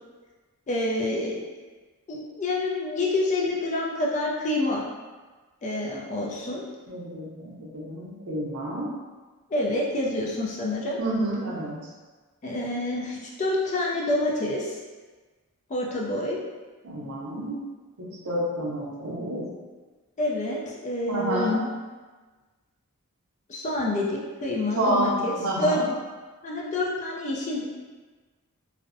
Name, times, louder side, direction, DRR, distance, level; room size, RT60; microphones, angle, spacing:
voice 1, 0.7-1.3 2.1-4.9 5.6-6.6 9.5-11.0 12.4-14.8 15.7-16.4 20.2-21.6 23.5-25.8 26.4-27.6, left 2 dB, 30° left, -3 dB, 0.3 m, -27 dB
voice 2, 6.9-9.0 11.0-11.9 16.8-17.7 18.0-19.5 21.1-21.6 24.8-25.9, right 1 dB, 75° right, -4 dB, 0.6 m, -29 dB
2.6 x 2.0 x 2.5 m, 1.3 s
head